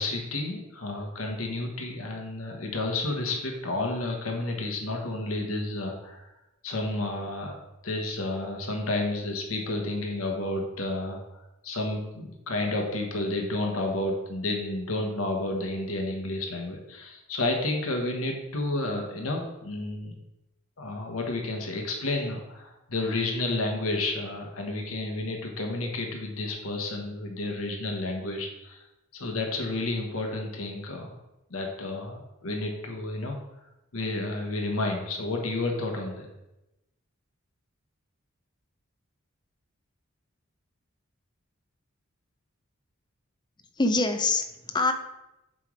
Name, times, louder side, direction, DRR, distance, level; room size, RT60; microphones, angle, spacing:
voice 1, 0.0-6.3 6.6-7.5 7.8-11.2 11.6-20.2 20.8-28.8 29.1-31.2 31.5-33.4 33.9-36.3, left 2 dB, 80° left, 2 dB, 1.1 m, -31 dB
voice 2, 43.8-44.9, left 3 dB, 20° left, 7 dB, 0.5 m, -25 dB
7.5 x 3.2 x 4.9 m, 0.93 s
head